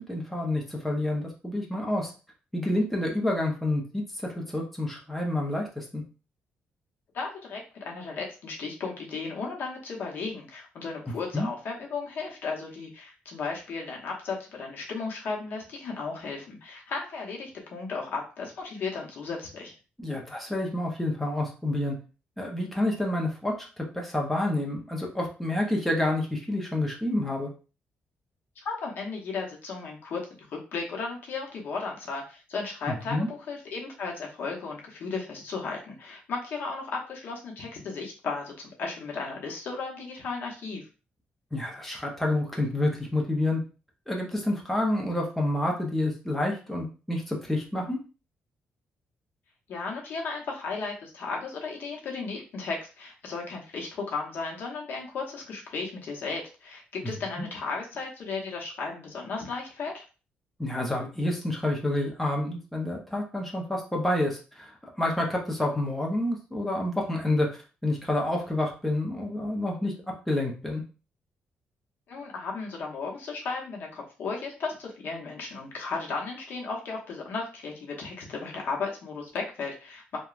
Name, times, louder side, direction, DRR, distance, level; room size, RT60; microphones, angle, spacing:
voice 1, 0.0-2.1 2.5-6.0 11.3-11.5 20.0-22.0 22.4-27.5 33.1-33.3 41.5-43.6 44.1-48.0 57.0-57.5 60.6-69.9 70.3-70.8, left 1 dB, 5° left, -1 dB, 0.7 m, -28 dB
voice 2, 7.1-19.7 28.6-30.2 30.5-40.8 49.7-60.0 72.1-80.2, left 4 dB, 65° left, -1 dB, 0.8 m, -35 dB
2.9 x 2.2 x 2.4 m, 0.35 s
cardioid pair, 105°, 4 cm